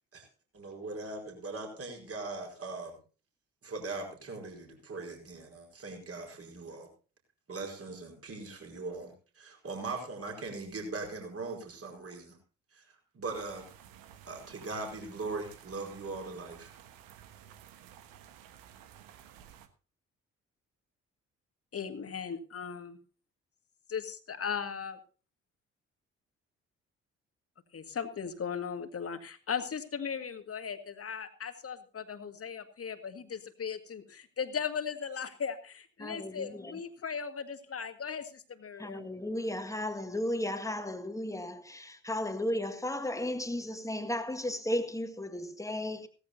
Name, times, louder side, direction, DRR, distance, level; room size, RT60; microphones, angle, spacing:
voice 1, 0.5-2.9 3.6-6.9 7.5-12.4 12.7-13.7 14.3-16.7, right 3 dB, 40° right, 4.8 m, -40 dB
sound 1, 13.3-19.7, right 10 dB, 65° right, 1.4 m, -54 dB
voice 2, 21.7-23.0 23.9-25.0 27.7-39.0, left 6 dB, 40° left, 1.9 m, -37 dB
voice 3, 36.0-36.8 38.8-46.1, left 1 dB, 10° left, 1.8 m, -34 dB
17.0 x 14.5 x 2.8 m
figure-of-eight pair, 45°, 37 cm